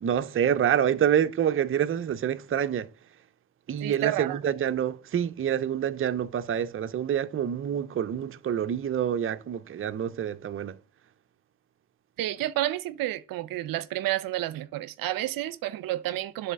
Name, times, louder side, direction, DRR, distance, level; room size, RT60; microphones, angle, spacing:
voice 1, 0.0-2.9 3.7-10.8, right 9 dB, 35° right, 0.7 m, -27 dB
voice 2, 3.8-4.4 12.2-16.5, right 15 dB, 70° right, 0.7 m, -30 dB
9.9 x 4.2 x 6.4 m
supercardioid pair, 70°, 36 cm